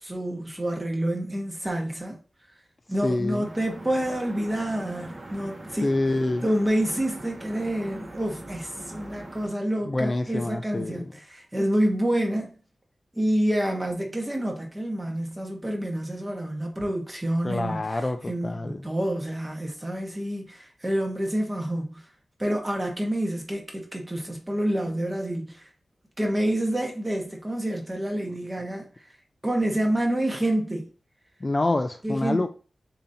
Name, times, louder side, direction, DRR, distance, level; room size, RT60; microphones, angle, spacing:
voice 1, 0.0-2.2 2.9-5.9 6.4-12.5 13.1-18.0 18.3-22.0 22.4-25.7 26.2-28.9 29.4-30.9 32.0-32.5, right 1 dB, 15° right, 1.2 m, -28 dB
voice 2, 3.0-3.5 5.8-6.4 9.9-11.1 17.4-18.8 31.4-32.5, left 2 dB, 25° left, 0.4 m, -26 dB
sound 1, 3.4-9.5, right 1 dB, 35° right, 1.7 m, -42 dB
6.9 x 2.8 x 2.7 m
wide cardioid pair, 135°, 0 cm